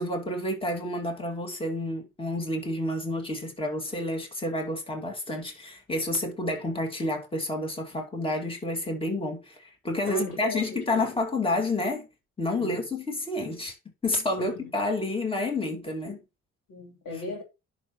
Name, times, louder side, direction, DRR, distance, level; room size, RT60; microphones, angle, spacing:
voice 1, 0.0-12.1 12.4-13.8 14.0-16.2, left 2 dB, 20° left, 2.5 m, -29 dB
voice 2, 10.1-11.1 12.6-12.8 14.4-14.7 16.7-17.4, left 2 dB, 85° left, 4.6 m, -37 dB
10.5 x 5.8 x 3.2 m
cardioid pair, 105°, 31 cm